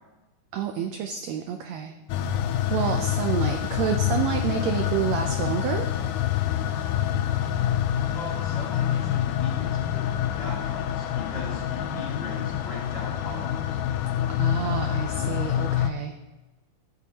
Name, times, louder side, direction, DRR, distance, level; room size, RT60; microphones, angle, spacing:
voice 1, 0.5-1.9 2.7-5.9 14.4-16.1, right 8 dB, 85° right, 5 dB, 1.5 m, -29 dB
sound 1, 2.1-15.9, left 10 dB, 80° left, 2.1 m, -26 dB
voice 2, 8.1-13.8, left 2 dB, 30° left, -6 dB, 3.9 m, -39 dB
14.5 x 8.4 x 2.9 m, 1.1 s
omnidirectional pair, 3.8 m